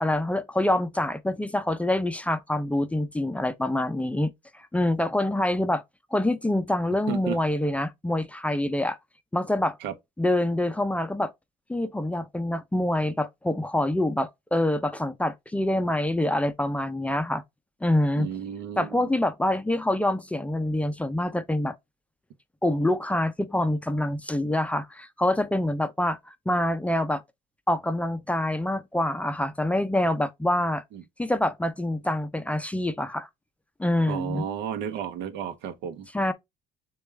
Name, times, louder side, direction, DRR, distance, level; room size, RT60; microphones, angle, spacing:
voice 1, 0.0-5.8 6.1-9.0 9.3-9.8 10.2-11.3 11.7-17.4 17.8-18.3 18.8-21.7 22.6-27.2 27.7-30.8 31.2-33.3 33.8-34.5 36.1-36.3, left 1 dB, 10° left, 0.4 m, -26 dB
voice 2, 7.1-7.4 9.8-9.9 18.1-19.1 30.9-31.0 34.1-36.1, right 9 dB, 80° right, 0.7 m, -33 dB
6.6 x 2.3 x 3.1 m
cardioid pair, 110°, 17 cm